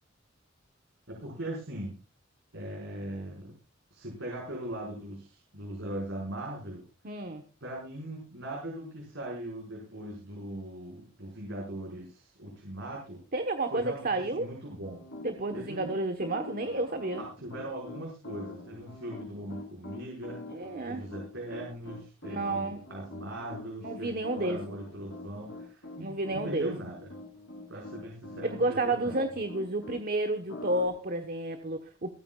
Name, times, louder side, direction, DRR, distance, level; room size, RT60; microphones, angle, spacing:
voice 1, 1.1-2.0 2.5-3.5 3.9-6.8 7.6-13.2 13.7-15.0 15.5-16.0 17.2-20.4 20.8-27.1 27.7-29.2, right 1 dB, 70° right, -3 dB, 5.6 m, -40 dB
voice 2, 7.0-7.4 13.3-14.5 15.2-17.2 20.5-21.0 22.3-22.8 23.8-24.6 26.0-26.7 28.4-32.1, right 2 dB, 45° right, 6 dB, 1.3 m, -31 dB
Piano, 14.8-30.0 30.5-30.9, left 2 dB, 90° left, 3.7 m, -45 dB
28.0 x 9.3 x 2.5 m, 0.31 s
head